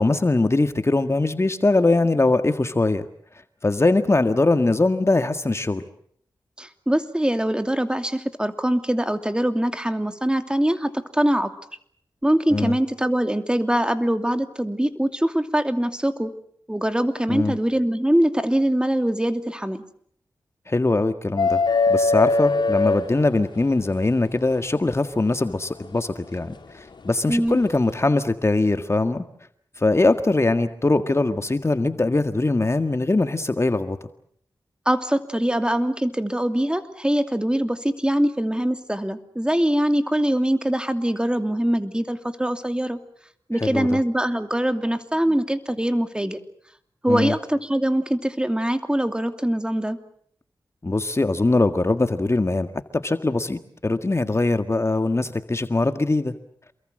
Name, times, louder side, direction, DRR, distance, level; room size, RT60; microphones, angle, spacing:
voice 1, 0.0-3.1 3.6-5.8 12.5-12.8 17.3-17.6 20.7-21.6 21.9-29.2 29.8-34.0 43.6-44.0 47.1-47.3 50.8-56.4, left 2 dB, 35° left, 9 dB, 1.8 m, -21 dB
voice 2, 6.6-11.5 12.2-16.3 16.7-19.8 27.3-27.6 34.9-43.0 43.5-46.4 47.0-50.0, right 1 dB, 10° right, 8 dB, 2.7 m, -23 dB
sound 1, 21.4-23.8 25.4-25.5 27.3-27.5, left 3 dB, 70° left, 3.2 m, -20 dB
28.5 x 22.0 x 7.7 m, 0.64 s
cardioid pair, 50°, 8 cm